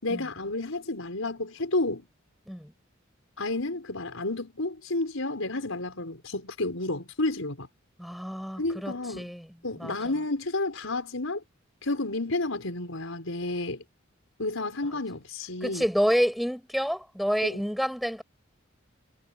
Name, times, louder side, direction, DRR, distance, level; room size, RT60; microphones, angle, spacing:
voice 1, 0.0-2.1 3.4-7.7 8.6-9.3 9.6-11.4 11.8-13.8 14.4-15.8 17.5-17.6, left 2 dB, 85° left, 5.2 m, -31 dB
voice 2, 8.0-9.5 9.8-9.9 15.6-18.2, equal, ahead, 6.8 m, -28 dB
head